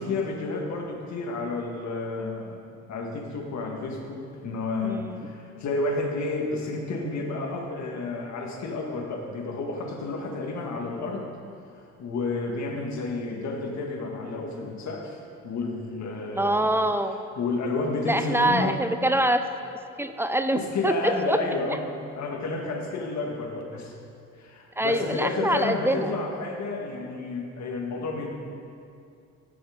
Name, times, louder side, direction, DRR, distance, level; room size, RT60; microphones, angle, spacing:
voice 1, 0.0-2.6 2.9-11.3 11.7-16.7 17.4-18.8 20.6-21.9 22.2-24.0 24.3-28.3, left 3 dB, 65° left, 1 dB, 1.8 m, -31 dB
voice 2, 4.8-5.2 16.3-17.2 18.1-19.4 20.0-21.4 24.8-26.1, right 1 dB, 10° right, 9 dB, 0.5 m, -25 dB
14.0 x 6.2 x 5.1 m, 2.5 s
cardioid pair, 90°, 30 cm